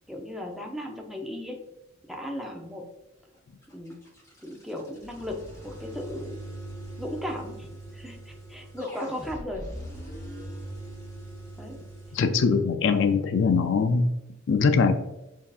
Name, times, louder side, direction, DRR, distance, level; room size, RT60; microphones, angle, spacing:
voice 1, 0.1-1.6 2.1-2.8 3.7-4.0 4.4-5.3 5.6-6.4 7.0-9.6 11.6-11.8, left 1 dB, ahead, 0 dB, 0.6 m, -36 dB
sound 1, 3.6-12.2, right 1 dB, 15° left, 1.0 m, -41 dB
voice 2, 12.1-14.1 14.5-15.1, left 5 dB, 60° left, 8 dB, 0.4 m, -22 dB
7.3 x 2.7 x 2.4 m, 0.95 s
head